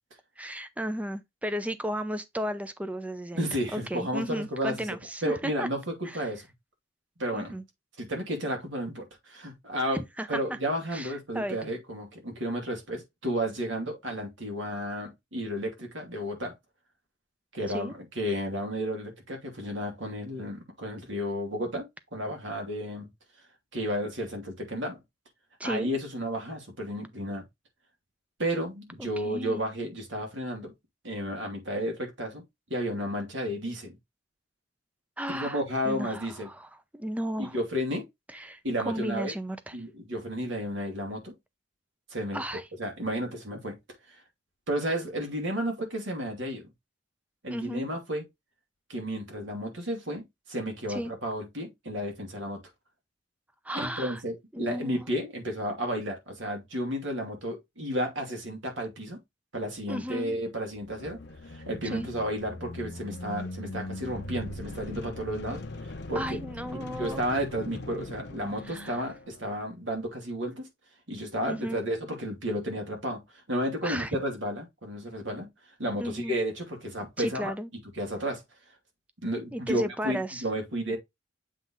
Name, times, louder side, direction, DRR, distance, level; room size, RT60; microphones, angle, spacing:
voice 1, 0.4-3.4 3.7-5.7 6.0-6.2 7.3-7.6 9.9-10.6 10.9-11.6 17.7-17.9 25.6-25.9 29.2-29.6 35.2-37.6 38.3-38.6 38.9-39.8 42.3-42.6 47.5-47.8 50.9-51.1 53.6-54.2 54.5-55.1 59.9-60.4 61.8-62.1 66.1-67.2 68.7-69.0 71.5-71.8 73.8-74.2 76.0-76.4 77.2-77.7 79.5-80.4, equal, 5° right, 0.6 m, -34 dB
voice 2, 3.3-4.9 5.2-6.5 7.2-7.6 8.0-10.0 10.3-16.5 17.5-21.9 22.1-23.1 23.7-25.0 25.6-27.4 28.4-30.7 31.0-32.4 32.7-34.0 35.3-36.5 37.4-38.1 38.6-39.3 39.7-41.3 42.1-43.8 44.1-44.2 44.7-46.7 47.4-48.2 48.9-52.6 53.7-59.2 59.5-61.2 61.5-65.6 66.1-66.4 66.7-70.7 71.1-75.5 75.8-77.5 77.9-78.4 79.2-81.0, equal, 80° right, 2.7 m, -32 dB
sound 1, 60.7-69.5, left 2 dB, 60° left, 0.9 m, -40 dB
7.6 x 3.4 x 3.9 m
head